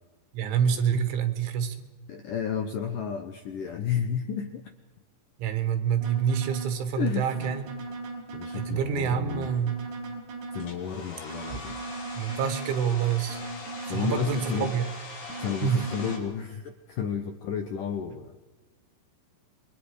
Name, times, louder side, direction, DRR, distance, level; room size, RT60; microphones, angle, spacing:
voice 1, 0.3-1.9 5.4-7.6 8.6-9.8 12.2-13.4 13.9-14.9 15.6-15.8, right 8 dB, 90° right, 8 dB, 4.2 m, -27 dB
voice 2, 2.1-4.6 7.0-7.9 8.3-9.5 10.5-11.8 13.9-14.7 15.4-18.3, left 8 dB, 80° left, 6 dB, 1.9 m, -32 dB
sound 1, 6.0-6.8 7.3-8.8 9.3-10.8 11.3-12.8 13.3-14.8 15.3-16.2, right 3 dB, 65° right, 6.5 m, -38 dB
Domestic sounds home sounds, 10.6-16.2, left 3 dB, 50° left, 5.0 m, -42 dB
28.5 x 24.0 x 4.9 m, 1.1 s
omnidirectional pair, 5.3 m